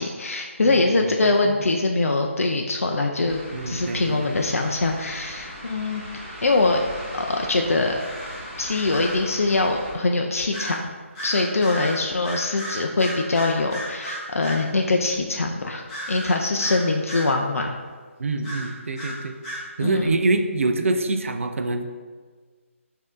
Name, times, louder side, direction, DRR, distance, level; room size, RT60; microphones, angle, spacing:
voice 1, 0.0-3.4 3.7-6.0 6.4-6.8 7.1-7.9 8.6-10.8 11.2-17.7 19.8-20.2, left 3 dB, 80° left, 2 dB, 0.4 m, -23 dB
voice 2, 0.6-1.5 3.5-4.4 18.2-19.3 19.8-21.9, right 3 dB, 65° right, 7 dB, 0.4 m, -25 dB
sound 1, 3.3-9.9, equal, 20° right, 1.5 m, -39 dB
sound 2, 8.0-9.2 10.5-10.8 11.1-14.7 15.9-17.4 18.4-19.7, equal, 20° left, 1.0 m, -34 dB
6.1 x 2.7 x 2.5 m, 1.5 s
figure-of-eight pair, 155°, 8 cm